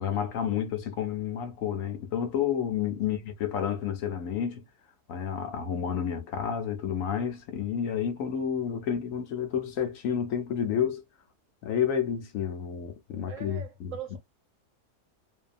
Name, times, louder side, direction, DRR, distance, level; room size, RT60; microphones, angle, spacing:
voice 1, 0.0-4.7 5.1-11.0 11.6-13.9, left 8 dB, 65° left, 1.0 m, -30 dB
voice 2, 13.3-14.2, right 9 dB, 65° right, 0.9 m, -40 dB
2.7 x 2.2 x 2.4 m
omnidirectional pair, 1.7 m